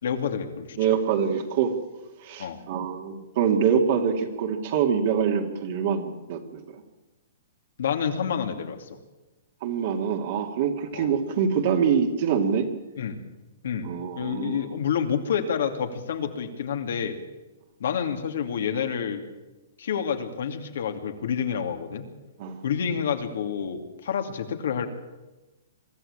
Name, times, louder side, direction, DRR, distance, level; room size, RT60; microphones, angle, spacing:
voice 1, 0.0-0.8 2.4-2.6 7.8-8.9 10.9-11.1 13.0-13.2 13.6-17.2 17.8-19.2 19.8-22.1 22.6-24.9, left 7 dB, 70° left, 5 dB, 2.7 m, -28 dB
voice 2, 0.8-1.8 2.2-6.6 9.6-12.7 13.8-14.7 22.4-22.6, right 7 dB, 45° right, 2 dB, 2.3 m, -25 dB
23.5 x 13.0 x 8.8 m, 1.1 s
hypercardioid pair, 155°, 0 cm